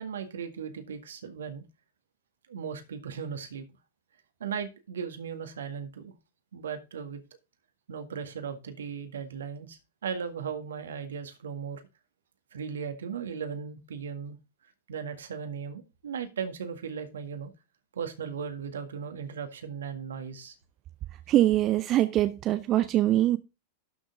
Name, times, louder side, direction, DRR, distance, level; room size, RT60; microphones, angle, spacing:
voice 1, 0.0-1.6 2.5-3.6 4.4-6.1 6.5-7.2 7.9-11.8 12.5-14.4 14.9-17.5 17.9-20.5, right 6 dB, 65° right, 1.8 m, -37 dB
voice 2, 21.3-23.4, right 14 dB, 35° right, 0.6 m, -23 dB
12.0 x 6.2 x 3.7 m
figure-of-eight pair, 90°, 0 cm